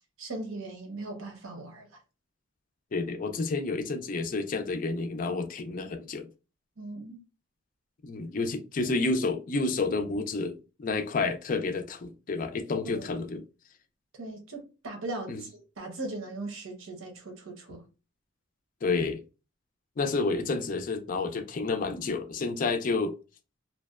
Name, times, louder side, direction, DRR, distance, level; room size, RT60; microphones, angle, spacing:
voice 1, 0.2-1.9 6.8-7.2 12.8-13.1 14.2-17.8, right 2 dB, 85° right, 0.8 m, -39 dB
voice 2, 2.9-6.3 8.0-13.4 15.3-15.4 18.8-19.2 20.0-23.1, left 3 dB, 45° left, 0.4 m, -30 dB
2.5 x 2.1 x 2.3 m
head